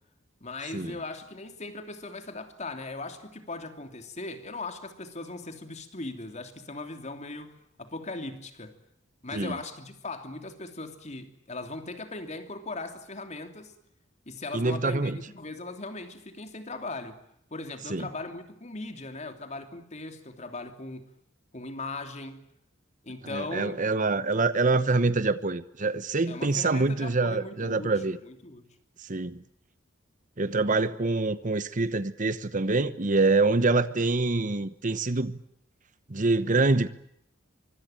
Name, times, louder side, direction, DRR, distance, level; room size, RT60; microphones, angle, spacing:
voice 1, 0.4-8.8 9.2-13.7 14.3-17.2 17.5-21.1 21.5-22.4 23.0-23.8 26.3-28.6, left 2 dB, 35° left, 3.0 m, -39 dB
voice 2, 14.5-15.2 17.9-18.1 23.2-28.2 29.1-29.4 30.4-35.4 36.1-36.9, right 3 dB, 40° right, 1.0 m, -25 dB
24.5 x 24.5 x 9.0 m
head